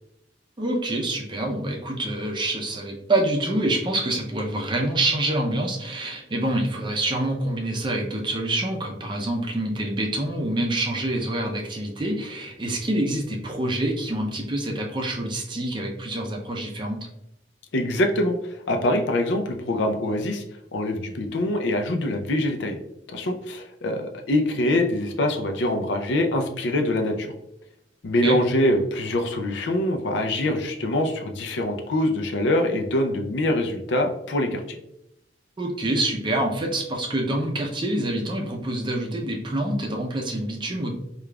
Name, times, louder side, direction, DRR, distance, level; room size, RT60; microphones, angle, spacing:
voice 1, 0.6-17.0 28.2-28.4 35.6-40.9, right 1 dB, 25° right, 1 dB, 0.5 m, -26 dB
voice 2, 17.7-20.4 20.7-22.8 23.1-27.3 28.0-34.6, left 1 dB, 75° left, 5 dB, 0.5 m, -24 dB
4.9 x 2.4 x 2.2 m, 0.83 s
head